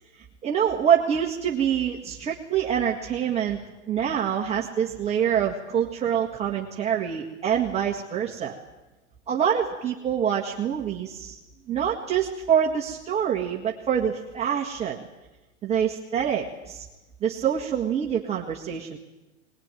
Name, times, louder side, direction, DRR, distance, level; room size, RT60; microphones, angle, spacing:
voice 1, 0.4-3.6 3.9-8.5 9.3-11.4 11.7-15.1 15.6-16.9 17.2-19.0, right 8 dB, 15° right, -2 dB, 1.7 m, -25 dB
22.5 x 20.5 x 9.2 m, 1.1 s
hypercardioid pair, 140°, 38 cm